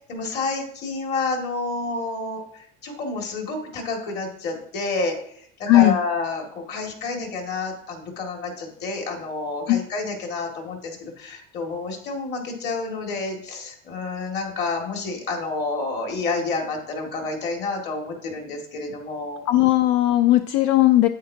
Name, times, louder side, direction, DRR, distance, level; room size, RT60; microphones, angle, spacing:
voice 1, 0.1-19.4, left 3 dB, 50° left, 2 dB, 2.3 m, -29 dB
voice 2, 5.6-6.0 9.7-9.8 19.5-21.1, left 15 dB, 80° left, 10 dB, 0.5 m, -17 dB
9.2 x 8.4 x 2.8 m, 0.68 s
cardioid pair, 140°, 21 cm